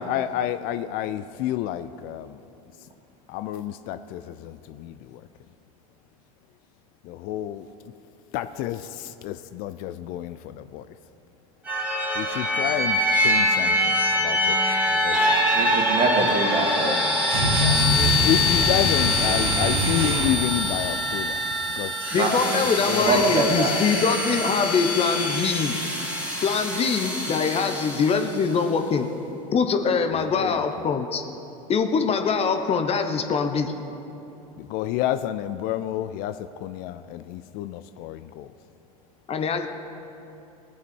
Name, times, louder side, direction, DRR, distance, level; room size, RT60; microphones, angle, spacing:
voice 1, 0.0-2.4 3.3-5.2 7.0-7.7 8.3-10.9 12.1-14.6 14.9-15.2 15.6-15.8 17.6-21.4 21.7-21.9 22.9-23.5 30.3-30.6 34.6-38.5, left 12 dB, 50° left, 11 dB, 0.4 m, -30 dB
sound 1, 11.7-28.4, left 1 dB, 5° right, 2.5 m, -24 dB
voice 2, 15.5-17.0 22.2-24.0, right 3 dB, 40° right, 1 dB, 2.1 m, -25 dB
sound 2, 17.3-20.4, right 1 dB, 85° right, 2.6 m, -24 dB
voice 3, 22.1-25.8 26.4-29.1 29.5-31.2 31.7-33.7 39.3-39.7, left 5 dB, 35° left, 6 dB, 0.9 m, -23 dB
17.5 x 8.4 x 4.5 m, 2.8 s
hypercardioid pair, 85°, 19 cm